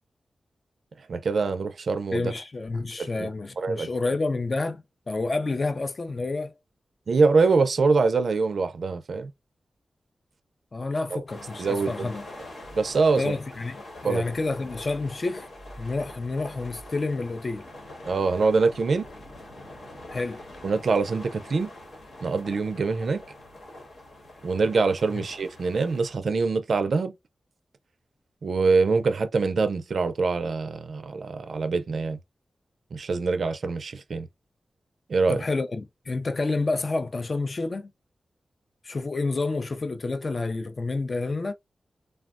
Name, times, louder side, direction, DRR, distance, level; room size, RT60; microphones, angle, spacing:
voice 1, 1.0-2.3 3.0-3.3 3.6-3.9 7.1-9.3 11.1-11.2 11.6-12.1 12.7-13.3 14.0-14.2 18.1-19.1 20.6-21.7 22.2-23.2 24.4-27.1 28.4-32.2 32.9-34.3 35.1-35.4, right 4 dB, 70° right, 0.4 m, -24 dB
voice 2, 2.1-6.5 10.7-12.3 13.2-15.5 15.8-17.6 20.1-20.4 35.3-37.9 38.8-41.5, left 3 dB, 40° left, 0.4 m, -29 dB
sound 1, 11.3-26.1, left 1 dB, 75° left, 1.2 m, -44 dB
3.3 x 2.1 x 2.3 m
wide cardioid pair, 105°, 0 cm